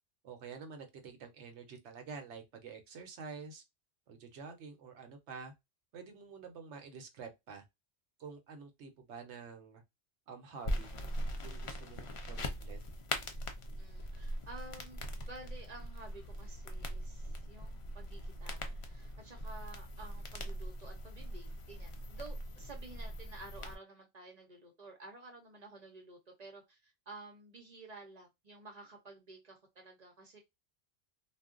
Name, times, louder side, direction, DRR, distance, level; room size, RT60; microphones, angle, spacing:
voice 1, 0.2-3.6 4.1-5.5 5.9-7.6 8.2-9.8 10.3-10.9 11.4-12.8, right 5 dB, 70° right, 1.0 m, -48 dB
sound 1, 10.6-23.8, equal, 55° left, 0.3 m, -41 dB
voice 2, 13.8-30.4, right 2 dB, 40° right, 0.7 m, -52 dB
2.4 x 2.2 x 3.6 m
omnidirectional pair, 1.2 m